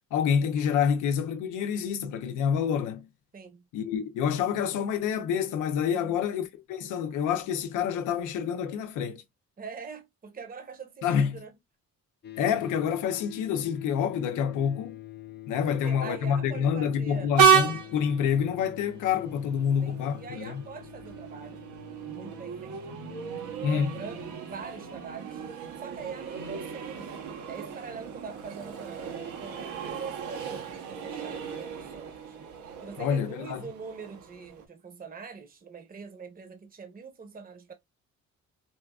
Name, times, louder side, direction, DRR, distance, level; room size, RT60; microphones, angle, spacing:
voice 1, 0.1-3.1 3.7-9.2 11.0-11.4 12.4-15.0 15.5-20.6 23.6-24.0 33.0-33.7, left 7 dB, 90° left, 0.6 m, -27 dB
voice 2, 3.3-3.6 5.8-6.2 9.6-11.5 15.7-17.3 19.8-21.6 22.1-23.0 23.6-25.4 25.8-27.1 27.5-32.4 32.8-37.7, right 5 dB, 30° right, 0.9 m, -43 dB
sound 1, 12.2-24.3, left 15 dB, 35° left, 0.4 m, -46 dB
Train, 17.4-34.7, right 7 dB, 80° right, 1.0 m, -32 dB
4.3 x 2.3 x 2.3 m
cardioid pair, 90°, 30 cm